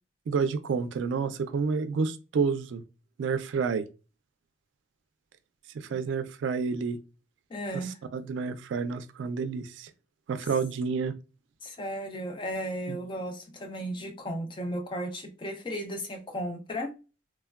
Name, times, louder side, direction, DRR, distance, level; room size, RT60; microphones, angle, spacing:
voice 1, 0.3-2.8 3.2-3.8 5.7-7.0 8.1-9.9 10.3-11.1 12.9-13.0, right 5 dB, 90° right, 0.3 m, -29 dB
voice 2, 7.5-8.0 11.6-16.9, equal, 25° left, 0.4 m, -35 dB
3.2 x 2.1 x 2.2 m
head